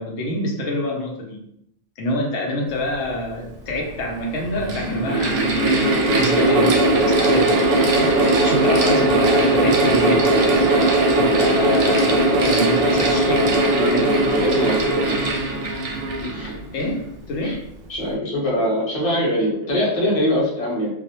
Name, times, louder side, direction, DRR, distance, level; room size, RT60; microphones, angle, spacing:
voice 1, 0.0-1.4 2.0-10.7 11.2-14.3 16.7-17.6, left 1 dB, 85° left, -1 dB, 1.0 m, -26 dB
Mechanical fan, 3.4-3.5 4.3-17.0, right 2 dB, 65° right, 0.7 m, -19 dB
voice 2, 13.8-14.1 14.4-15.6 16.3-16.5 17.4-17.6 17.9-20.9, equal, 35° left, -6 dB, 0.8 m, -23 dB
2.4 x 2.0 x 2.8 m, 0.74 s
omnidirectional pair, 1.3 m